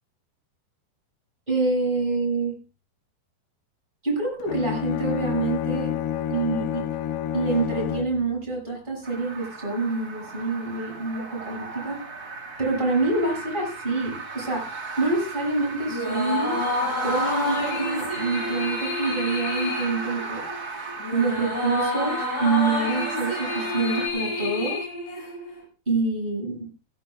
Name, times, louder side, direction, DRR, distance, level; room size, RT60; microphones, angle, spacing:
voice 1, 1.5-2.6 4.0-5.9 6.3-6.9 7.3-12.0 12.6-14.7 15.0-16.6 17.0-20.4 21.1-24.8 25.9-26.7, right 3 dB, 10° right, -1 dB, 6.9 m, -26 dB
Bowed string instrument, 4.4-8.3, left 10 dB, 85° left, 3.0 m, -28 dB
sound 1, 9.0-24.1, right 4 dB, 40° right, 1.4 m, -36 dB
sound 2, 15.9-25.6, left 2 dB, 70° left, 8.5 m, -29 dB
16.5 x 16.0 x 2.5 m, 0.34 s
omnidirectional pair, 4.8 m